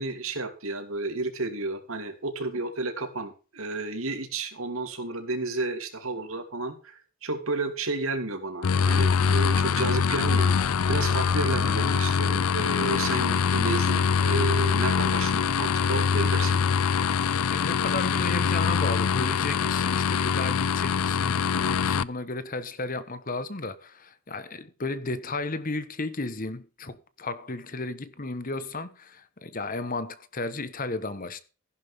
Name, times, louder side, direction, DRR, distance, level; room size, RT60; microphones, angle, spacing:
voice 1, 0.0-10.5 10.9-16.6, right 2 dB, 75° right, 2.9 m, -32 dB
sound 1, 8.6-22.0, left 6 dB, 90° left, 0.5 m, -24 dB
voice 2, 17.5-31.4, left 3 dB, 40° left, 1.1 m, -33 dB
15.5 x 11.0 x 3.6 m
head